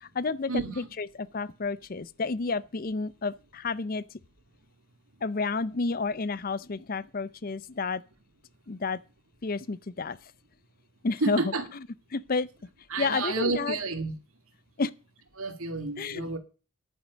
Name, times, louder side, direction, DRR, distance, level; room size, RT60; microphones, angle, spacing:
voice 1, 0.0-4.0 5.2-8.0 8.7-9.0 9.4-10.2 11.0-12.5 13.0-13.8 14.8-14.9 16.0-16.2, left 4 dB, 40° left, 0.5 m, -31 dB
voice 2, 11.2-11.6 12.9-14.1 15.4-16.4, right 3 dB, 75° right, 2.2 m, -30 dB
10.5 x 9.5 x 5.1 m
head